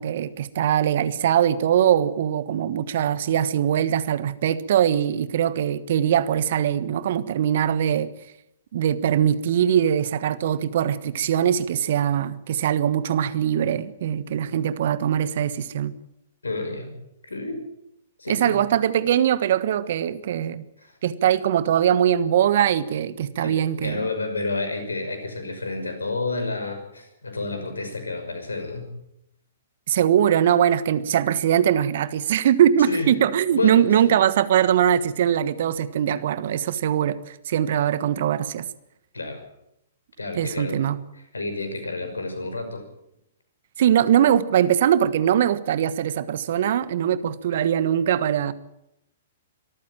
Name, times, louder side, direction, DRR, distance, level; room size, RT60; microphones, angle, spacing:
voice 1, 0.0-8.1 8.7-15.9 18.3-20.6 21.0-24.0 29.9-38.6 40.3-41.0 43.8-48.5, right 10 dB, 55° right, 16 dB, 1.3 m, -21 dB
voice 2, 16.4-17.0 17.2-17.6 18.2-18.6 20.8-21.0 23.4-28.9 32.9-33.1 33.5-34.1 39.1-39.4 40.2-40.8 41.3-42.8, left 3 dB, 85° left, 7 dB, 5.8 m, -30 dB
24.0 x 14.0 x 8.9 m, 0.80 s
figure-of-eight pair, 115°, 0 cm